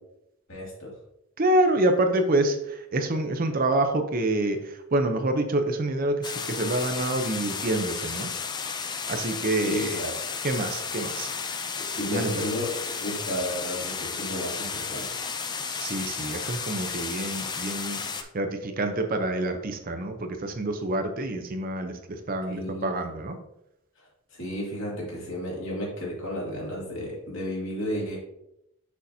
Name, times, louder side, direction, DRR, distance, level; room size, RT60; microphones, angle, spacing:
voice 1, 0.5-0.9 9.6-10.2 12.0-15.2 22.5-23.1 24.0-28.2, equal, 65° left, -4 dB, 2.3 m, -33 dB
voice 2, 1.4-8.3 9.1-10.0 10.4-11.3 12.1-12.3 15.8-23.4, right 1 dB, 40° right, 6 dB, 0.6 m, -27 dB
sound 1, 6.2-18.2, left 5 dB, 20° left, 0.3 m, -33 dB
6.4 x 5.7 x 2.7 m, 0.82 s
head